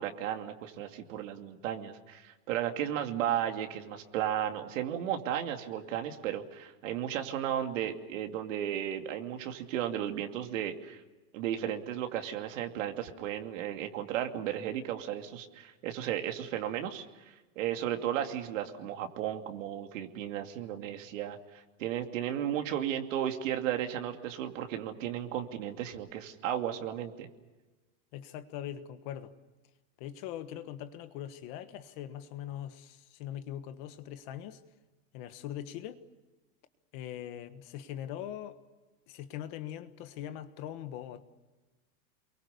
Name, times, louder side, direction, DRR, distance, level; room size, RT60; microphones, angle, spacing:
voice 1, 0.0-11.0 11.3-17.0 17.6-21.4 21.8-27.3, right 10 dB, 60° right, 2.8 m, -34 dB
voice 2, 28.1-29.3 30.0-34.6 35.1-36.0 36.9-38.6 39.1-41.2, left 11 dB, 35° left, 1.4 m, -41 dB
29.5 x 23.0 x 6.8 m
supercardioid pair, 180°, 43 cm